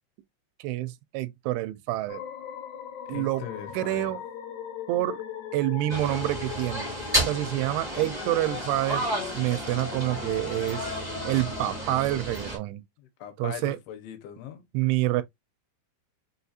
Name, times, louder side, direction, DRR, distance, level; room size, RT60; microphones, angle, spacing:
voice 1, 0.6-2.2 3.1-3.4 3.7-4.2 4.9-5.2 5.5-6.9 7.3-9.1 9.3-11.0 11.2-12.8 13.4-13.8 14.7-15.2, right 16 dB, 85° right, 2.5 m, -27 dB
sound 1, 2.1-11.8, left 8 dB, 70° left, 2.0 m, -39 dB
voice 2, 3.1-4.1 13.0-14.6, left 9 dB, 85° left, 2.8 m, -40 dB
sound 2, 5.9-12.6, right 1 dB, 15° right, 0.6 m, -32 dB
5.9 x 2.4 x 2.7 m
omnidirectional pair, 4.5 m